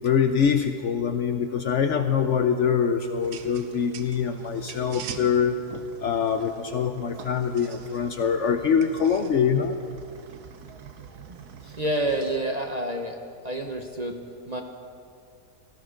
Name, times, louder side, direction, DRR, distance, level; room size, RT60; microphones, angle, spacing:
voice 1, 0.0-5.6 6.0-9.8, left 7 dB, 60° left, 7 dB, 0.8 m, -24 dB
sound 1, 3.2-12.4, right 7 dB, 80° right, 1.4 m, -44 dB
voice 2, 11.7-13.2 13.4-14.2 14.5-14.6, right 1 dB, 30° right, 3 dB, 0.9 m, -28 dB
17.5 x 14.5 x 5.1 m, 2.3 s
omnidirectional pair, 1.7 m